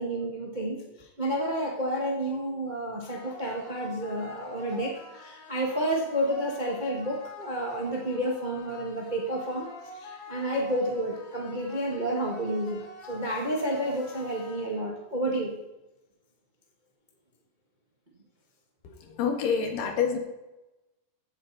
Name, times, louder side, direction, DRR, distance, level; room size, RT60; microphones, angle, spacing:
voice 1, 0.0-15.5, right 1 dB, 50° right, -1 dB, 0.5 m, -30 dB
sound 1, 3.1-15.1, equal, 60° left, 2.4 m, -46 dB
voice 2, 18.8-20.2, left 6 dB, 75° left, 3 dB, 3.4 m, -27 dB
15.5 x 8.7 x 4.0 m, 1.0 s
omnidirectional pair, 3.9 m